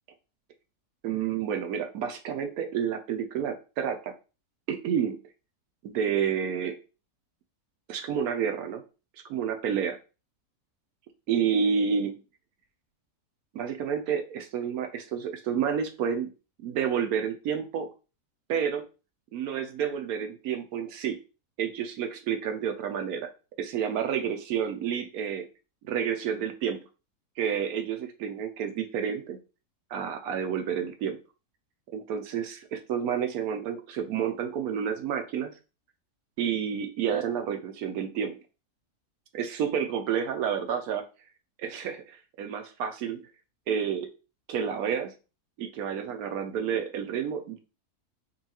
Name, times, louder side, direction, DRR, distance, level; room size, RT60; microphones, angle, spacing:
voice 1, 1.0-4.1 4.7-5.2 5.8-6.8 7.9-8.8 9.3-10.0 11.3-12.2 13.5-16.3 16.6-17.9 18.5-18.8 19.3-21.2 21.6-23.3 23.6-25.5 25.8-26.8 27.4-29.4 29.9-31.2 31.9-35.5 36.4-38.4 39.3-41.0 41.6-43.2 43.7-44.1 44.5-45.1 45.6-47.6, right 7 dB, 75° right, 7 dB, 1.0 m, -30 dB
5.3 x 2.3 x 2.8 m, 0.32 s
omnidirectional pair, 1.7 m